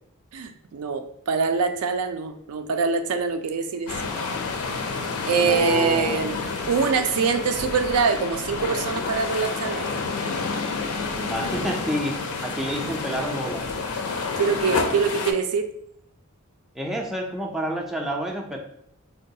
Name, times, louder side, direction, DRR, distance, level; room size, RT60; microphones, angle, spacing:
voice 1, 0.3-3.9 5.3-6.3 6.7-9.9 14.4-15.7, right 5 dB, 85° right, 7 dB, 0.4 m, -24 dB
sound 1, 3.9-15.3, left 4 dB, 75° left, 0.4 m, -29 dB
voice 2, 5.4-6.3 11.2-12.2 12.4-13.7 16.8-18.6, equal, ahead, 0 dB, 0.3 m, -29 dB
3.7 x 2.3 x 2.6 m, 0.74 s
head